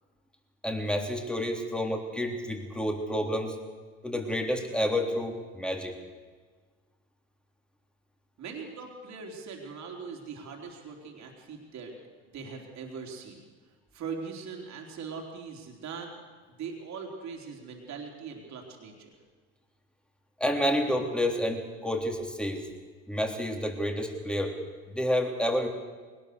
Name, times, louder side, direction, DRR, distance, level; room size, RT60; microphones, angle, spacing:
voice 1, 0.6-3.6 4.0-6.0 20.4-22.6 23.1-24.5 24.9-25.7, equal, 5° left, 3 dB, 3.6 m, -29 dB
voice 2, 8.4-11.9 12.3-13.4 13.9-16.2 16.5-19.1, right 5 dB, 50° right, 1 dB, 3.9 m, -41 dB
21.0 x 19.5 x 6.8 m, 1.4 s
hypercardioid pair, 80°, 35 cm